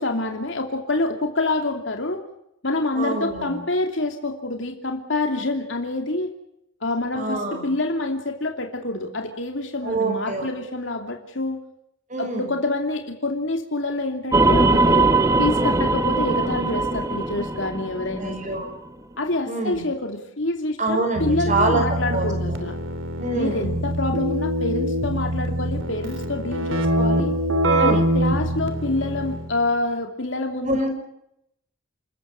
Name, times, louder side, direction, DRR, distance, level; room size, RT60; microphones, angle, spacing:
voice 1, 0.0-2.2 2.6-6.3 6.8-11.6 12.2-15.1 15.4-18.6 19.2-22.8 23.3-27.3 27.8-30.9, left 2 dB, 65° left, 3 dB, 2.8 m, -27 dB
voice 2, 3.0-3.6 7.1-7.7 9.8-10.5 12.1-12.5 18.2-18.7 19.5-19.8 20.8-21.8 22.1-22.6 23.2-23.7 27.7-28.1 30.6-30.9, right 2 dB, 35° right, 4 dB, 5.8 m, -25 dB
sound 1, 14.3-18.7, right 2 dB, 15° right, 1.1 m, -20 dB
Keyboard (musical), 21.2-29.6, right 1 dB, 70° right, 3.2 m, -24 dB
27.5 x 14.0 x 9.4 m, 0.77 s
head